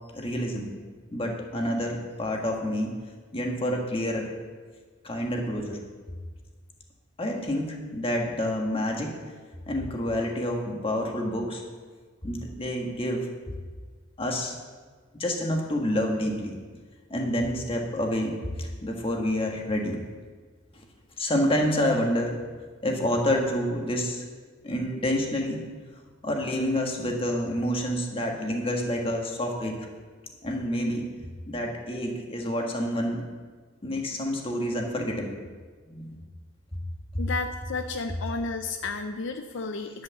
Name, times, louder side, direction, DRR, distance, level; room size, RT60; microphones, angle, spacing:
voice 1, 0.1-0.7 1.1-3.0 3.3-4.3 5.0-5.8 7.2-9.2 9.7-11.6 12.2-13.3 14.2-14.5 15.1-16.6 17.1-20.0 20.7-20.8 21.2-22.4 22.8-24.2 24.6-25.6 26.2-29.9 30.4-31.1 31.5-33.3 33.8-35.4 35.9-36.2 36.7-36.8, equal, 30° left, 1 dB, 1.6 m, -28 dB
voice 2, 37.2-40.0, left 3 dB, 70° left, 7 dB, 0.6 m, -32 dB
10.5 x 6.6 x 7.1 m, 1.5 s
head